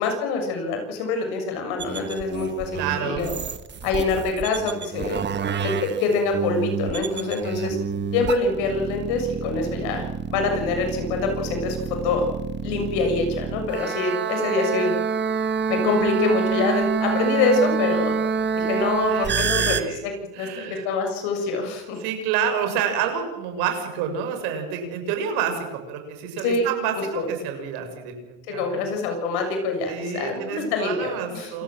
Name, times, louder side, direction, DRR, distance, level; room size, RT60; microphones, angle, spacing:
voice 1, 0.0-3.3 3.8-5.2 5.6-7.8 8.1-10.1 10.3-11.8 12.0-12.2 12.6-14.9 15.7-18.1 18.6-20.1 20.4-22.0 26.4-26.7 27.2-27.3 28.5-31.6, left 3 dB, 70° left, 4 dB, 7.0 m, -25 dB
sound 1, 1.8-19.8, right 6 dB, 25° right, 1.5 m, -27 dB
voice 2, 2.7-3.3 19.1-20.0 20.3-20.9 22.0-28.8 29.9-31.6, right 7 dB, 70° right, 5 dB, 6.8 m, -29 dB
27.5 x 16.0 x 7.6 m, 1.1 s
cardioid pair, 130°, 41 cm